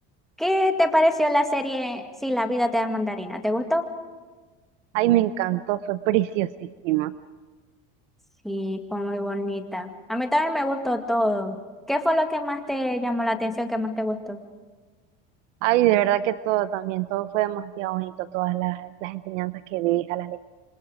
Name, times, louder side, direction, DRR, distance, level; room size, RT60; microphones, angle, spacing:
voice 1, 0.4-3.8 8.4-11.6 11.9-14.4, left 1 dB, ahead, 4 dB, 2.1 m, -25 dB
voice 2, 4.9-7.1 15.6-20.5, right 15 dB, 85° right, 13 dB, 0.8 m, -24 dB
27.5 x 26.0 x 5.1 m, 1.4 s
supercardioid pair, 125°, 36 cm